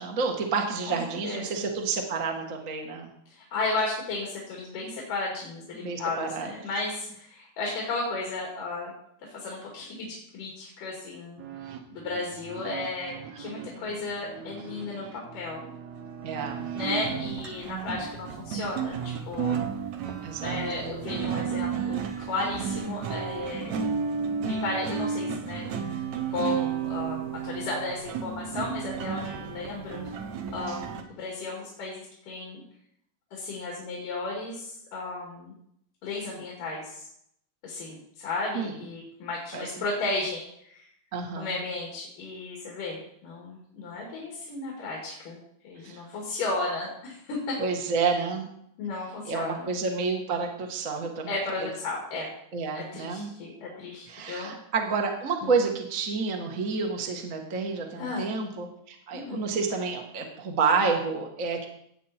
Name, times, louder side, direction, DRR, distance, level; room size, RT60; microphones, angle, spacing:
voice 1, 0.0-3.1 5.8-6.5 16.2-16.7 20.2-20.6 30.7-30.8 38.5-38.8 39.5-39.7 41.1-41.6 45.8-46.0 47.6-48.5 49.2-51.3 51.6-51.7 52.5-53.3 54.1-61.7, right 4 dB, 35° right, 2 dB, 1.5 m, -29 dB
voice 2, 0.9-1.6 3.3-8.9 9.2-11.4 11.9-15.6 16.7-19.6 20.4-23.8 24.4-26.0 26.3-30.0 30.5-32.6 33.3-35.5 36.0-37.1 37.6-40.8 41.4-45.4 45.6-47.6 48.8-49.7 51.3-52.3 52.7-54.5 55.4-55.6 58.0-58.3 59.1-59.5, left 3 dB, 85° left, -2 dB, 4.1 m, -34 dB
sound 1, 11.4-31.0, right 7 dB, 65° right, 2.3 m, -33 dB
17.0 x 8.2 x 4.4 m, 0.72 s
omnidirectional pair, 3.7 m